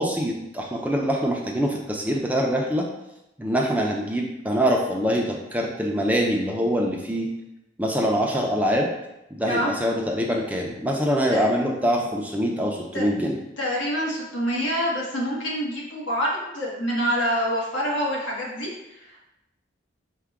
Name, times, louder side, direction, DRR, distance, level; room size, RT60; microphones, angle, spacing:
voice 1, 0.0-2.9 3.4-7.3 7.8-8.9 9.3-13.4, equal, 10° right, -1 dB, 0.4 m, -24 dB
voice 2, 13.6-19.3, equal, 70° left, -4 dB, 1.1 m, -26 dB
4.7 x 2.2 x 3.4 m, 0.92 s
head